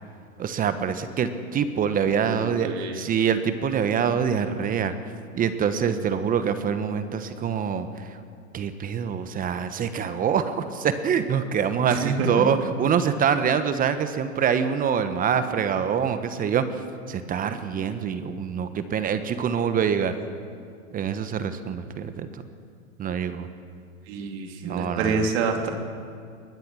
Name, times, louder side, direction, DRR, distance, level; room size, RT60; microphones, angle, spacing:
voice 1, 0.4-4.9 5.3-7.9 8.5-16.6 17.1-20.1 20.9-22.4 23.0-23.5 24.6-25.3, right 7 dB, 20° right, 10 dB, 1.2 m, -25 dB
voice 2, 2.0-3.0 11.9-12.3 24.1-25.7, right 5 dB, 50° right, 3 dB, 3.0 m, -28 dB
21.5 x 20.0 x 6.3 m, 2.3 s
hypercardioid pair, 115°, 41 cm